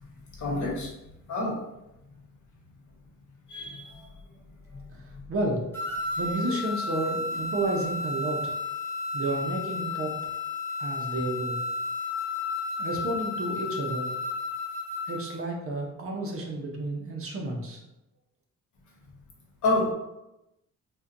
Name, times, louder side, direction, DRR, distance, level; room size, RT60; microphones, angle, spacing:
voice 1, 0.4-0.9 1.3-1.6 3.5-4.0 19.6-19.9, left 2 dB, 65° left, -2 dB, 1.1 m, -27 dB
voice 2, 5.3-5.6 6.2-8.5 9.1-10.1 10.8-11.6 12.8-14.1 15.1-17.8, right 2 dB, 45° right, 0 dB, 0.7 m, -31 dB
sound 1, 5.7-15.3, left 3 dB, 5° left, 0.6 m, -32 dB
4.2 x 2.2 x 2.5 m, 0.91 s
cardioid pair, 140°, 32 cm